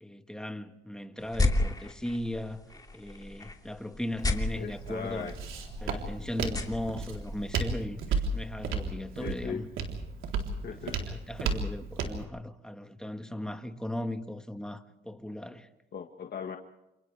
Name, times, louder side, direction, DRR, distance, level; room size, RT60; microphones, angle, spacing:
voice 1, 0.0-2.7 2.9-5.3 5.8-9.7 11.1-15.7, left 1 dB, 5° left, 1.7 m, -37 dB
sound 1, 1.2-7.9, left 2 dB, 20° left, 2.8 m, -34 dB
Walk footsteps, 4.2-12.2, right 4 dB, 80° right, 3.8 m, -34 dB
voice 2, 4.5-5.3 9.2-9.7 10.6-11.1 11.5-11.6 15.9-16.6, left 7 dB, 55° left, 1.6 m, -39 dB
29.0 x 28.0 x 3.5 m
cardioid pair, 90°, 20 cm